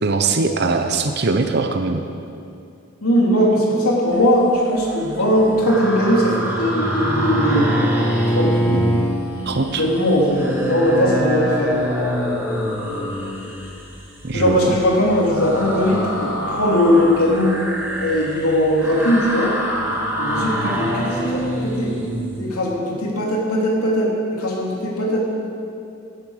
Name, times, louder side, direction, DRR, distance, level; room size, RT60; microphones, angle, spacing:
voice 1, 0.0-2.0 8.7-9.0 9.5-9.8 14.2-14.7, right 3 dB, 50° right, 6 dB, 0.8 m, -21 dB
voice 2, 3.0-7.8 8.3-8.5 9.8-11.7 14.3-17.6 18.0-19.5 20.2-21.9 22.4-25.2, equal, 80° left, -3 dB, 3.1 m, -19 dB
sound 1, 4.6-5.2 5.5-22.4, equal, 10° right, 2.3 m, -26 dB
Bowed string instrument, 5.4-9.2, right 1 dB, 10° left, 1.1 m, -23 dB
17.0 x 8.8 x 6.4 m, 2.6 s
head